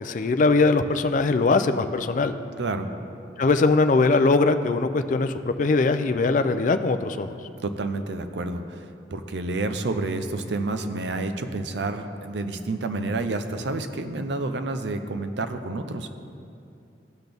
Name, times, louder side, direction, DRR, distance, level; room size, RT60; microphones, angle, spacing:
voice 1, 0.0-2.3 3.4-7.3, left 3 dB, 45° left, 9 dB, 0.4 m, -21 dB
voice 2, 2.6-2.9 7.6-16.1, right 2 dB, 75° right, 8 dB, 0.6 m, -29 dB
15.5 x 6.0 x 3.5 m, 2.6 s
head